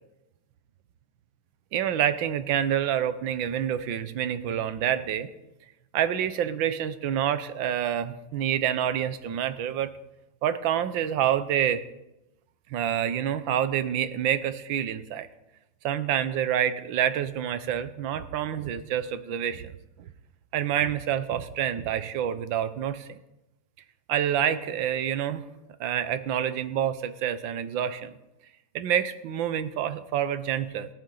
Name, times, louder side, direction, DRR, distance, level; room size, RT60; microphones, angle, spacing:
voice 1, 1.7-5.3 5.9-9.9 10.4-11.9 12.7-15.3 15.8-20.1 20.5-23.2 24.1-25.4 25.8-28.1 28.7-30.9, right 10 dB, 75° right, 12 dB, 1.5 m, -27 dB
20.5 x 9.9 x 3.9 m, 0.94 s
omnidirectional pair, 2.1 m